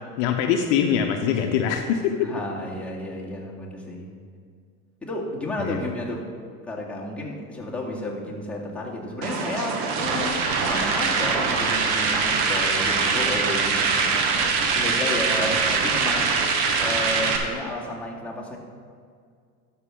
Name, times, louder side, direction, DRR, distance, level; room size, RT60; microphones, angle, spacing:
voice 1, 0.2-2.3 5.6-5.8, left 8 dB, 60° left, 4 dB, 0.8 m, -23 dB
voice 2, 2.2-4.1 5.0-6.3 6.7-16.3 16.8-18.6, left 1 dB, 5° left, -5 dB, 2.0 m, -32 dB
sound 1, 9.2-17.4, right 4 dB, 60° right, 1.3 m, -23 dB
12.5 x 6.0 x 3.8 m, 2.2 s
hypercardioid pair, 95°, 43 cm